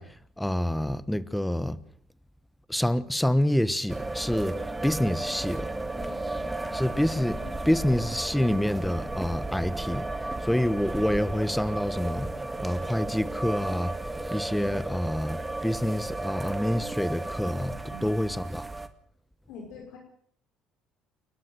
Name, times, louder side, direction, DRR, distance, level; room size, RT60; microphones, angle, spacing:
voice 1, 0.0-1.8 2.7-4.6 4.8-5.7 6.7-7.4 7.6-13.9 14.3-18.7, left 1 dB, 5° left, 1.2 m, -27 dB
sound 1, 3.9-18.9, right 2 dB, 15° right, 1.9 m, -34 dB
voice 2, 6.0-6.7 7.4-7.8 8.3-8.6 17.9-18.1 19.5-20.0, left 4 dB, 75° left, 5.3 m, -46 dB
29.0 x 12.0 x 7.8 m
supercardioid pair, 80°, 0 cm